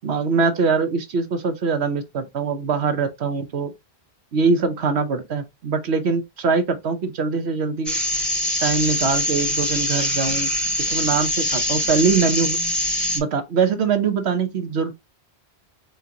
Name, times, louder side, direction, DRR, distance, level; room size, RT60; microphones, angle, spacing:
voice 1, 0.0-3.7 4.3-8.0 8.6-10.5 10.9-12.6 13.1-15.0, right 5 dB, 85° right, 1.2 m, -22 dB
sound 1, 7.9-13.2, left 1 dB, ahead, 2.4 m, -23 dB
4.4 x 3.9 x 2.8 m
omnidirectional pair, 1.1 m